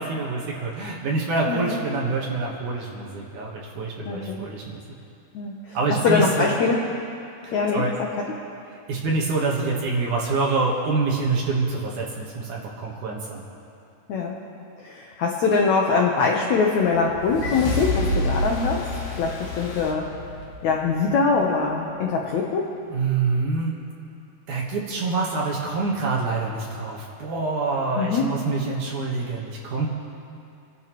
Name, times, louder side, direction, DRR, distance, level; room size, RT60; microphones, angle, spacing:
voice 1, 0.0-4.8 5.7-6.5 7.4-7.9 8.9-13.4 22.9-23.7 24.5-29.9, right 3 dB, 60° right, -3 dB, 2.4 m, -26 dB
voice 2, 1.5-1.8 4.0-4.4 5.3-5.8 6.0-6.8 7.5-8.1 14.1-14.4 14.8-18.8 19.2-20.1 20.6-22.6 27.9-28.3, left 4 dB, 80° left, -1 dB, 1.6 m, -23 dB
sound 1, 17.0-21.4, left 1 dB, 60° left, 2.3 m, -29 dB
29.0 x 11.0 x 3.1 m, 2.5 s
omnidirectional pair, 4.7 m